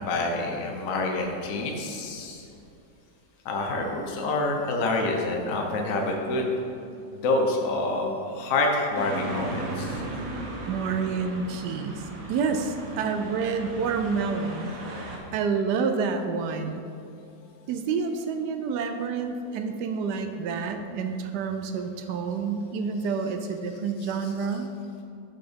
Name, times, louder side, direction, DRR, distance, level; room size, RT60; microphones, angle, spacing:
voice 1, 0.0-2.5 3.4-6.5 7.1-10.0 23.0-23.1 23.7-24.4, left 2 dB, 50° left, 1 dB, 1.1 m, -27 dB
sound 1, 8.9-15.2, right 2 dB, 50° right, 1.3 m, -36 dB
voice 2, 10.7-14.7 15.3-16.9 17.7-24.7, right 5 dB, 70° right, 7 dB, 1.1 m, -28 dB
6.8 x 5.9 x 5.1 m, 2.6 s
omnidirectional pair, 2.1 m